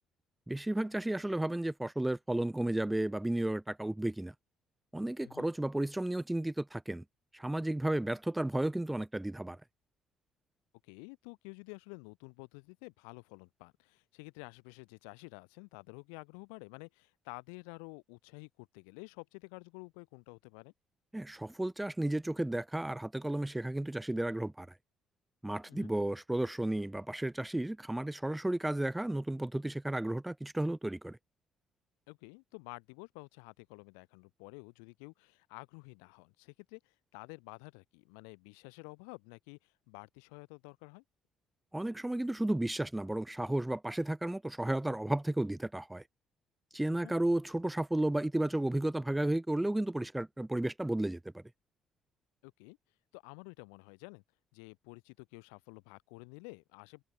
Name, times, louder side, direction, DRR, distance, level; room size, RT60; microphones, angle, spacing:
voice 1, 0.5-4.3 4.9-7.0 7.3-9.6 21.1-24.7 25.4-31.2 41.7-46.0 46.7-51.4, right 1 dB, 10° right, 0.4 m, -33 dB
voice 2, 10.9-20.7 25.7-25.9 32.1-41.0 46.9-47.2 52.4-52.8 53.1-54.2 54.5-57.0, left 40 dB or more, 70° left, 1.7 m, -51 dB
figure-of-eight pair, 45°, 0 cm